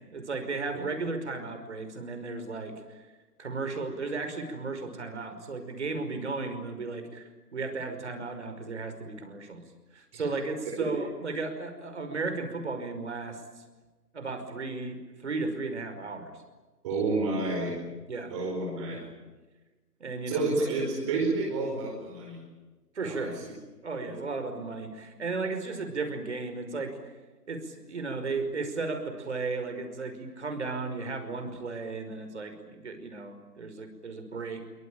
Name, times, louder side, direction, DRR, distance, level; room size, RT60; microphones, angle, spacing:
voice 1, 0.0-3.0 3.4-9.6 9.9-13.4 14.1-16.3 18.1-18.4 18.9-19.1 20.0-20.5 22.9-23.4 23.8-27.0 27.5-34.6, right 3 dB, 45° right, 8 dB, 5.6 m, -35 dB
voice 2, 10.6-11.0 16.8-17.8 18.3-19.0 20.3-22.4 23.0-23.5 24.0-24.3, right 3 dB, 20° right, -1 dB, 5.0 m, -30 dB
26.5 x 24.5 x 8.9 m, 1.2 s
figure-of-eight pair, 155°, 48 cm